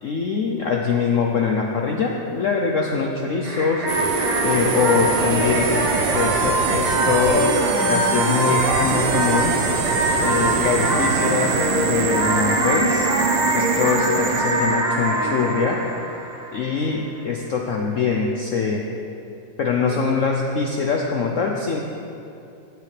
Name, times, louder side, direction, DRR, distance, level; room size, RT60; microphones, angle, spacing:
voice 1, 0.0-3.9 4.4-5.7 6.1-7.5 7.8-9.5 10.2-13.1 13.5-15.8 16.5-18.9 19.6-21.8, left 5 dB, 75° left, 0 dB, 0.7 m, -23 dB
sound 1, 3.4-16.9, right 1 dB, 55° right, 2.5 m, -24 dB
sound 2, 3.9-15.8, right 6 dB, 80° right, 1.4 m, -24 dB
15.5 x 6.6 x 3.3 m, 2.6 s
omnidirectional pair, 2.0 m